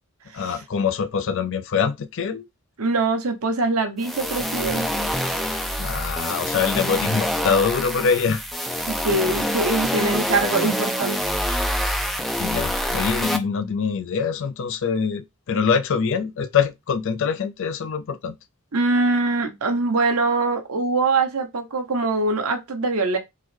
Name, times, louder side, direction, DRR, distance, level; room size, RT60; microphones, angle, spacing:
voice 1, 0.3-2.5 5.8-8.4 12.4-18.3, left 6 dB, 60° left, 0.4 m, -24 dB
voice 2, 2.8-5.4 8.9-11.2 18.7-23.2, right 3 dB, 75° right, 0.9 m, -23 dB
sound 1, 4.0-13.4, equal, ahead, 0.4 m, -26 dB
3.8 x 3.1 x 3.2 m
head